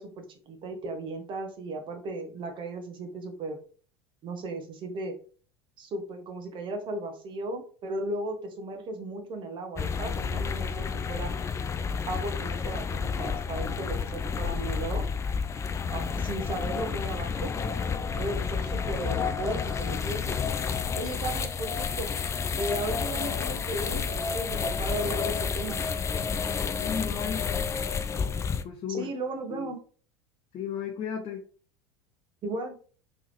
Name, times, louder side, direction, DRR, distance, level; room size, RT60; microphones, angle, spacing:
voice 1, 0.0-3.6 4.2-5.2 5.8-11.3 12.1-15.0 15.9-17.5 18.2-20.4 20.9-22.1 22.5-25.8 28.9-29.8 32.4-32.8, right 2 dB, 40° right, 4 dB, 1.1 m, -35 dB
sound 1, 9.8-28.6, left 6 dB, 20° left, 0.4 m, -30 dB
voice 2, 26.8-27.5 28.6-29.1 29.5-29.7 30.5-31.4, left 7 dB, 40° left, 2 dB, 0.7 m, -34 dB
3.6 x 3.2 x 3.2 m, 0.40 s
hypercardioid pair, 75°, 13 cm